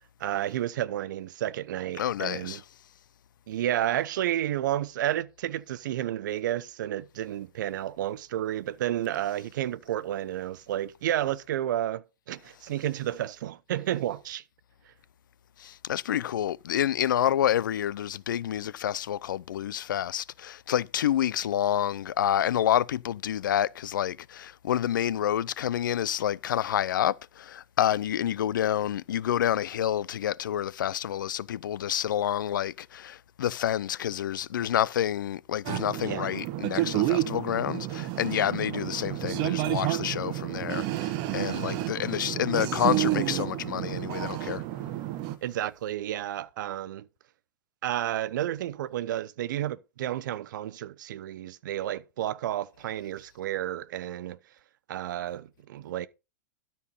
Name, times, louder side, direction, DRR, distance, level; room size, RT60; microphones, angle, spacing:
voice 1, 0.2-2.6 3.5-14.4 36.0-36.3 45.4-47.1 47.8-54.4 54.9-56.1, right 12 dB, 75° right, 0.8 m, -31 dB
voice 2, 2.0-2.6 15.6-44.6, left 10 dB, 90° left, 0.5 m, -28 dB
sound 1, 35.7-45.4, right 15 dB, 45° right, 1.2 m, -30 dB
13.0 x 4.5 x 5.4 m
hypercardioid pair, 135°, 10 cm